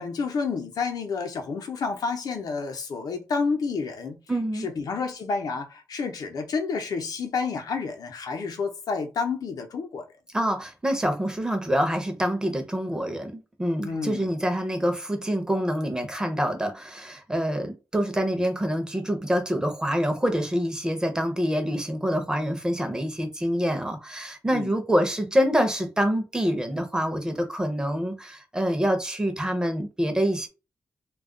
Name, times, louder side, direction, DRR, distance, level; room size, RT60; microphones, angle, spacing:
voice 1, 0.0-4.2 4.5-10.1 13.8-14.3 24.5-24.7, left 4 dB, 85° left, 0.6 m, -30 dB
voice 2, 4.3-4.7 10.3-30.5, equal, 10° right, 0.5 m, -26 dB
2.3 x 2.1 x 3.6 m
wide cardioid pair, 160°, 6 cm